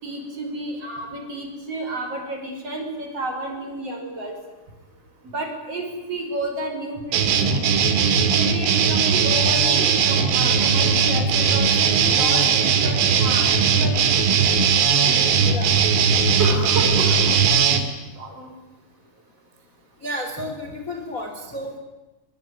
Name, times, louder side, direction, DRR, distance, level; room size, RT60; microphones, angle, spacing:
voice 1, 0.0-4.3 5.3-7.7 8.3-14.1 16.3-17.4 18.1-18.5, right 2 dB, 30° right, 3 dB, 6.2 m, -31 dB
sound 1, 7.1-17.8, right 6 dB, 85° right, 5.0 m, -19 dB
voice 2, 20.0-21.8, equal, 20° left, 3 dB, 2.6 m, -31 dB
25.0 x 23.5 x 9.9 m, 1.1 s
omnidirectional pair, 5.7 m